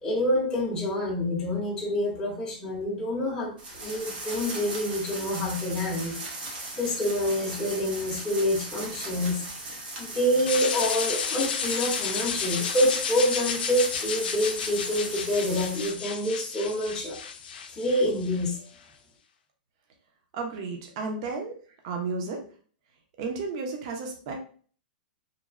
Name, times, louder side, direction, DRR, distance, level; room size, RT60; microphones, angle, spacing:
voice 1, 0.0-6.1 6.8-9.4 10.0-17.2 17.7-18.6, left 1 dB, 15° left, -4 dB, 0.5 m, -27 dB
sound 1, 3.6-15.9, right 2 dB, 90° right, 1.0 m, -39 dB
sound 2, 10.5-18.5, left 6 dB, 90° left, 0.4 m, -32 dB
voice 2, 20.3-21.6 21.8-22.4 23.2-24.3, right 4 dB, 40° right, 2 dB, 0.5 m, -33 dB
3.0 x 2.0 x 2.4 m, 0.44 s
supercardioid pair, 170°, 5 cm